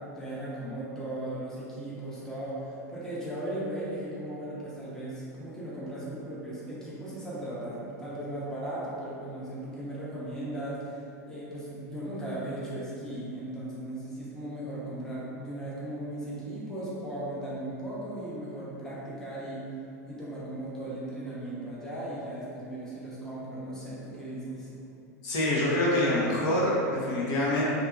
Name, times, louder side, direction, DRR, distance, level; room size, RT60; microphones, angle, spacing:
voice 1, 0.0-11.0 11.3-19.6 20.1-24.7, right 1 dB, 5° left, -9 dB, 0.8 m, -37 dB
voice 2, 25.2-27.6, left 1 dB, 45° left, -7 dB, 0.6 m, -26 dB
2.6 x 2.4 x 2.4 m, 2.6 s
hypercardioid pair, 100°, 9 cm